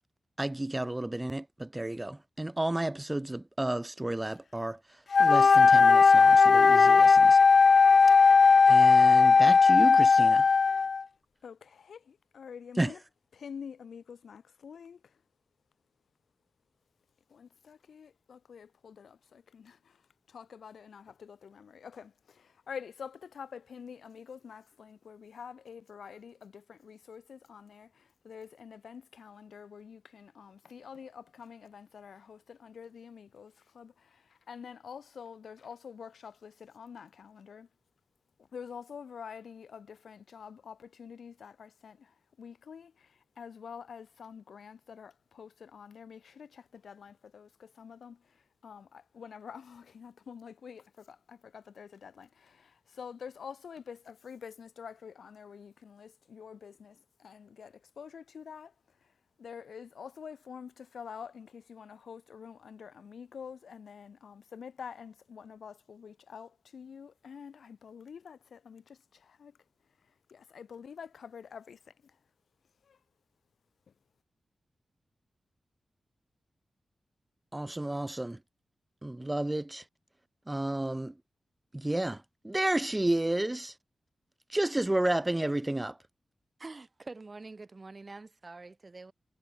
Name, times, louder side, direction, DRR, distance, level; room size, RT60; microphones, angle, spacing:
voice 1, 0.4-4.8 5.2-7.4 8.7-10.5 12.8-12.9 77.5-78.4 79.0-79.8 80.5-81.1 81.7-83.7 84.5-86.0, right 1 dB, 15° right, 2.0 m, -31 dB
Wind instrument woodwind instrument, 5.1-11.0, left 5 dB, 60° left, 0.4 m, -18 dB
voice 2, 11.4-13.0 13.3-15.2 17.3-20.0 20.3-37.7 38.4-58.7 59.0-59.1 59.4-69.6 70.3-72.2 72.8-73.0, left 7 dB, 90° left, 2.9 m, -47 dB
voice 3, 86.6-89.1, right 3 dB, 40° right, 3.9 m, -46 dB
wide cardioid pair, 85°, 0 cm